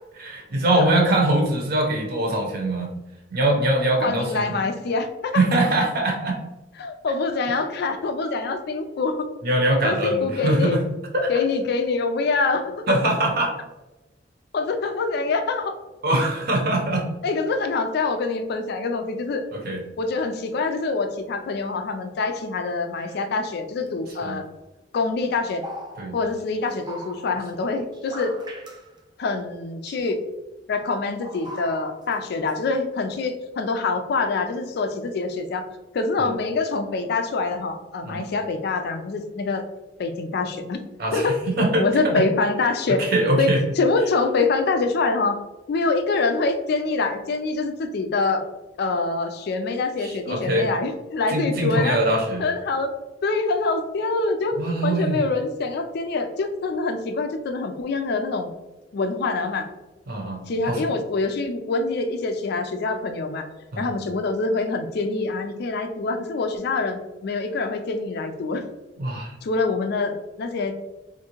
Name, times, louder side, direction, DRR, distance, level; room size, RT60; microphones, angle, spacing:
voice 1, 0.1-2.9 3.3-4.5 5.3-6.4 9.4-10.8 11.1-11.3 12.9-13.5 16.0-17.0 19.5-19.8 24.2-24.4 26.0-26.2 36.2-36.3 38.0-38.2 41.0-42.2 43.0-43.6 50.0-50.7 51.3-52.4 54.6-55.2 60.1-60.8 63.7-63.9 69.0-69.3, right 1 dB, 55° right, 0 dB, 0.8 m, -22 dB
voice 2, 4.0-5.4 6.8-9.3 9.8-10.8 11.3-13.0 14.5-15.7 17.2-19.4 20.0-24.5 24.9-25.6 26.1-28.4 29.2-30.2 30.7-35.7 35.9-39.6 40.0-40.8 41.1-41.3 41.8-43.1 43.4-48.4 48.8-52.0 52.4-52.9 53.2-58.5 58.9-59.7 60.5-63.5 63.8-68.6 69.4-70.8, left 3 dB, 60° left, 6 dB, 0.4 m, -25 dB
sound 1, 23.0-23.3 23.9-24.2 25.1-27.6 27.9-29.0 29.9-30.1 31.2-32.2 32.5-32.6, equal, 25° right, 0.4 m, -41 dB
3.5 x 2.5 x 2.9 m, 1.1 s
head